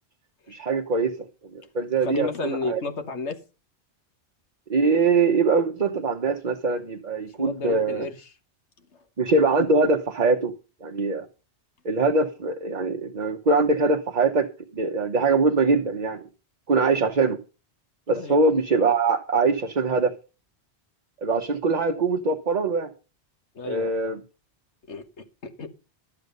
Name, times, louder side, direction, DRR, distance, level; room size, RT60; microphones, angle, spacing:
voice 1, 0.5-1.1 1.5-2.8 4.7-8.1 9.2-10.5 10.8-11.3 11.8-14.5 14.7-16.2 16.7-17.4 18.1-20.1 21.2-22.9 23.6-24.2, right 3 dB, 40° right, 1.0 m, -22 dB
voice 2, 2.0-3.4 7.4-8.3 18.1-18.4 23.5-24.1 24.9-25.7, left 3 dB, 75° left, 1.6 m, -32 dB
12.0 x 8.0 x 5.3 m
omnidirectional pair, 1.2 m